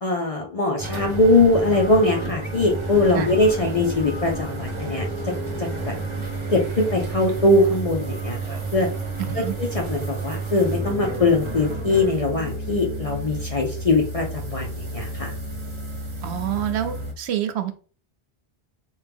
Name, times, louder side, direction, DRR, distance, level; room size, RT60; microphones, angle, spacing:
voice 1, 0.0-5.3 5.6-5.9 6.5-8.9 9.6-15.3, left 2 dB, 40° left, 1 dB, 0.6 m, -21 dB
sound 1, 0.8-17.1, right 2 dB, 30° right, 0.7 m, -31 dB
voice 2, 9.2-9.5 16.2-17.8, right 11 dB, 85° right, 8 dB, 0.9 m, -27 dB
4.4 x 2.3 x 3.4 m, 0.40 s
omnidirectional pair, 1.1 m